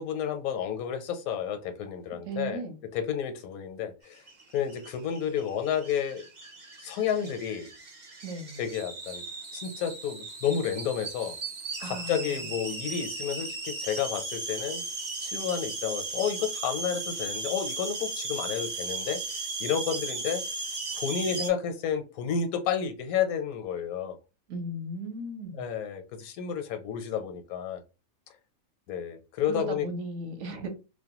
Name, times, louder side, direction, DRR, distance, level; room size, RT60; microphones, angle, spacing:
voice 1, 0.0-2.6 2.9-4.2 4.5-6.2 6.8-7.7 8.6-9.2 9.5-11.3 11.8-14.8 15.2-19.2 19.6-20.4 20.9-24.1 25.5-27.8 28.9-29.9, left 8 dB, 80° left, 1.0 m, -31 dB
voice 2, 2.3-2.8 8.2-8.6 11.8-12.1 24.5-25.7 29.5-30.7, right 2 dB, 70° right, 0.9 m, -36 dB
sound 1, 4.2-21.5, right 3 dB, 50° right, 0.6 m, -37 dB
2.5 x 2.1 x 2.8 m
omnidirectional pair, 1.5 m